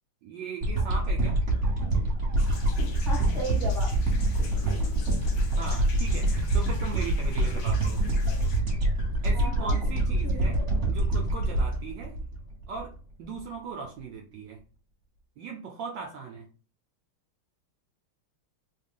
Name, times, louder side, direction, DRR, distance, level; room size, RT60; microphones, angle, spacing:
voice 1, 0.2-1.4 5.5-8.0 9.2-10.6 10.9-12.1 12.7-14.6 15.4-16.5, right 5 dB, 75° right, 1 dB, 1.1 m, -39 dB
sound 1, 0.6-12.9 13.4-13.5, right 1 dB, 40° right, 1.2 m, -26 dB
sound 2, 2.4-8.6, left 4 dB, 65° left, 1.0 m, -46 dB
voice 2, 3.0-3.9 9.3-9.8 10.2-10.6, right 1 dB, 5° left, -2 dB, 0.6 m, -35 dB
3.8 x 2.3 x 3.6 m, 0.39 s
omnidirectional pair, 2.4 m